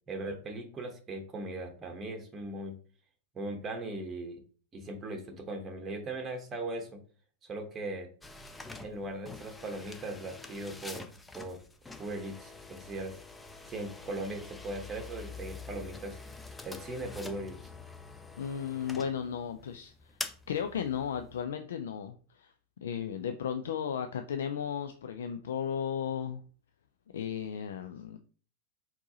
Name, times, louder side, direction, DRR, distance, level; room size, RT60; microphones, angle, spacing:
voice 1, 0.1-2.8 3.3-4.4 4.7-7.0 7.5-8.1 8.8-11.6 12.0-13.1 13.7-16.2 16.6-17.6, right 2 dB, 20° right, 3 dB, 0.9 m, -39 dB
sound 1, 8.2-21.4, left 3 dB, 10° left, 0.5 m, -46 dB
voice 2, 18.4-19.9 20.5-22.5 22.8-26.4 27.1-28.2, left 8 dB, 60° left, 7 dB, 0.4 m, -35 dB
4.5 x 4.0 x 2.8 m, 0.41 s
figure-of-eight pair, 90°, 0 cm